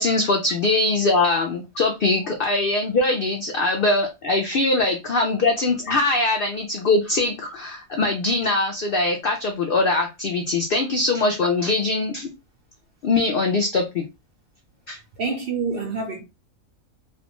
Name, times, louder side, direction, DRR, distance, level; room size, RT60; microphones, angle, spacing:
voice 1, 0.0-12.3 13.0-14.0 14.9-15.0, left 2 dB, 75° left, 0.5 m, -22 dB
voice 2, 15.2-16.2, right 4 dB, 60° right, 0.6 m, -27 dB
2.5 x 2.1 x 2.9 m
omnidirectional pair, 1.5 m